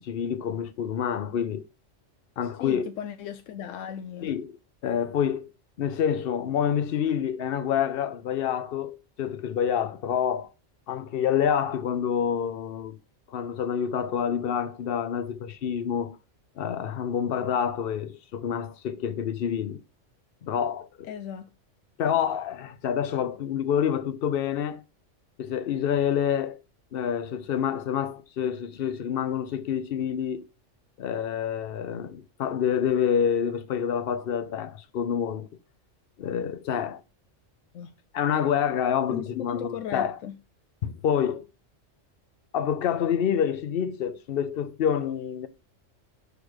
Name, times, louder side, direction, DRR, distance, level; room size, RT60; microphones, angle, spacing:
voice 1, 0.0-1.7 2.4-2.9 4.2-4.5 4.8-5.5 5.8-10.5 10.9-13.0 13.3-16.2 16.6-19.8 20.4-21.1 22.0-24.8 25.4-26.6 26.9-30.4 31.0-35.5 36.2-37.0 38.1-40.2 40.8-41.5 42.5-45.5, left 8 dB, 55° left, 0.8 m, -27 dB
voice 2, 2.4-4.3 21.0-21.5 37.7-37.9 39.1-40.3, left 10 dB, 85° left, 1.0 m, -36 dB
6.7 x 3.5 x 6.1 m
omnidirectional pair, 1.3 m